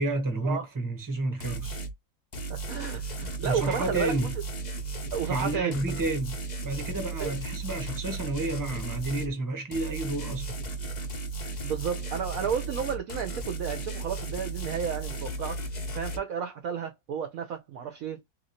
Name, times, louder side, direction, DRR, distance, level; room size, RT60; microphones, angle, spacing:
voice 1, 0.0-1.8 3.4-4.3 5.3-10.6, right 2 dB, 20° right, 0.6 m, -30 dB
sound 1, 1.4-1.9 2.3-9.3 9.7-16.2, right 3 dB, 80° left, 0.4 m, -35 dB
voice 2, 2.5-4.3 5.1-5.8 7.2-7.3 11.4-15.6 15.9-18.2, right 7 dB, 70° right, 0.8 m, -32 dB
3.0 x 2.8 x 2.6 m
omnidirectional pair, 1.9 m